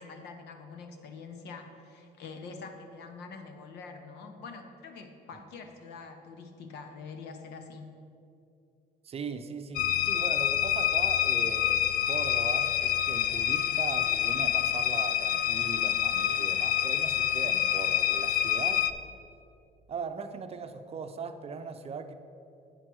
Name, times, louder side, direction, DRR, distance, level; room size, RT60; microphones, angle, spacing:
voice 1, 0.0-7.9, left 4 dB, 80° left, 6 dB, 1.0 m, -45 dB
voice 2, 9.0-18.9 19.9-22.1, right 5 dB, 35° right, 8 dB, 0.6 m, -39 dB
sound 1, 9.8-18.9, left 11 dB, 55° left, 0.5 m, -27 dB
8.7 x 5.9 x 6.2 m, 2.6 s
cardioid pair, 110°, 17 cm